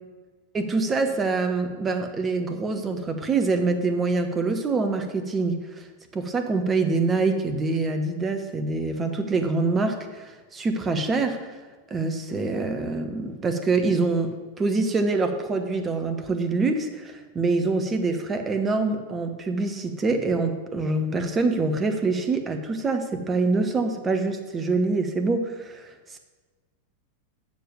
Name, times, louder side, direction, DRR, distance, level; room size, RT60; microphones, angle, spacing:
voice 1, 0.5-5.9 6.1-11.5 11.9-26.2, right 3 dB, 20° right, 6 dB, 1.2 m, -25 dB
7.2 x 6.8 x 7.8 m, 1.3 s
figure-of-eight pair, 90°, 0 cm